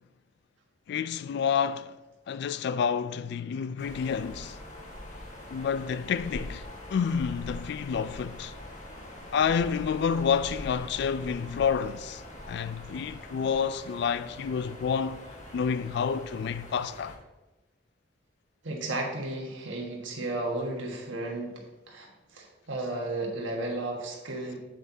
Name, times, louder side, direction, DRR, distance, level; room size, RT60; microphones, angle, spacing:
voice 1, 0.9-2.0 2.3-4.6 5.5-6.6 6.9-8.5 9.3-12.2 12.5-15.2 15.5-17.2, left 6 dB, 60° left, 0.3 m, -29 dB
sound 1, 3.8-17.2, left 1 dB, 40° left, 1.5 m, -43 dB
voice 2, 18.6-24.6, right 2 dB, 85° right, 1.4 m, -34 dB
7.9 x 7.7 x 2.7 m
head